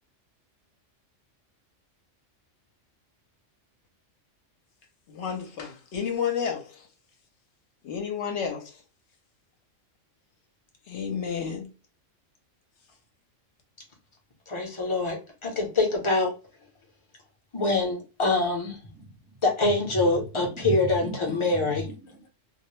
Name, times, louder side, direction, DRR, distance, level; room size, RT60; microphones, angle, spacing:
voice 1, 5.1-6.9 7.8-8.8 10.9-11.7, left 7 dB, 70° left, 0.9 m, -31 dB
voice 2, 14.5-15.2 15.4-16.3 17.5-18.8 19.4-21.8, left 2 dB, 30° left, 0.6 m, -25 dB
voice 3, 18.9-19.7 20.2-22.3, right 3 dB, 20° right, 0.4 m, -38 dB
2.3 x 2.0 x 3.0 m
omnidirectional pair, 1.3 m